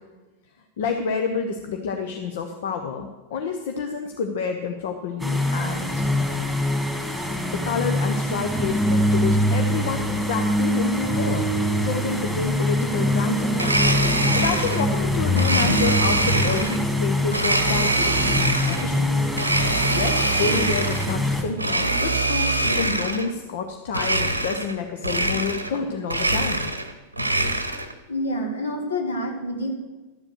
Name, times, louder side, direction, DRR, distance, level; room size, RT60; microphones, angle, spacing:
voice 1, 0.8-6.1 7.5-11.5 11.8-13.7 14.0-19.3 19.9-26.7 27.2-27.4, left 5 dB, 55° left, 5 dB, 0.9 m, -29 dB
sound 1, 5.2-21.4, left 1 dB, ahead, 2.1 m, -24 dB
Domestic sounds home sounds, 13.5-14.9 15.4-16.8 17.3-18.9 19.3-21.1 21.5-23.3 23.9-24.8 25.0-25.8 26.0-27.9, right 2 dB, 85° right, 0.9 m, -24 dB
voice 2, 28.1-29.7, left 1 dB, 70° left, 2 dB, 2.2 m, -27 dB
12.5 x 7.5 x 6.5 m, 1.2 s
figure-of-eight pair, 90°, 0 cm